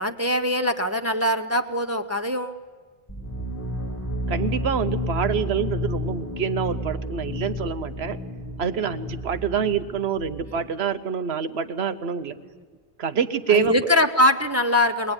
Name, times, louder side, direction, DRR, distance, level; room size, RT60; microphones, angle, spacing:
voice 1, 0.0-2.6 13.5-15.1, left 1 dB, 20° right, 7 dB, 0.5 m, -22 dB
sound 1, 3.1-10.7, left 1 dB, 15° left, 1.2 m, -31 dB
voice 2, 4.3-8.2 8.6-12.4 13.0-13.7, right 7 dB, 90° right, 11 dB, 1.2 m, -26 dB
22.5 x 18.5 x 9.8 m, 1.5 s
omnidirectional pair, 1.0 m